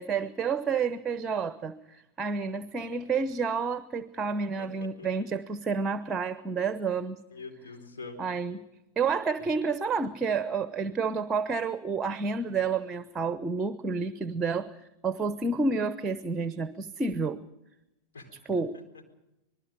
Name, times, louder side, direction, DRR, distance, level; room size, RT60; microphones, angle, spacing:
voice 1, 0.0-7.2 8.2-8.6 9.0-17.4 18.5-18.7, right 4 dB, 20° right, 13 dB, 0.9 m, -30 dB
voice 2, 4.6-5.2 7.3-8.2 18.1-19.0, left 3 dB, 65° left, 3 dB, 4.3 m, -45 dB
26.0 x 20.0 x 5.3 m, 0.91 s
figure-of-eight pair, 90°, 0 cm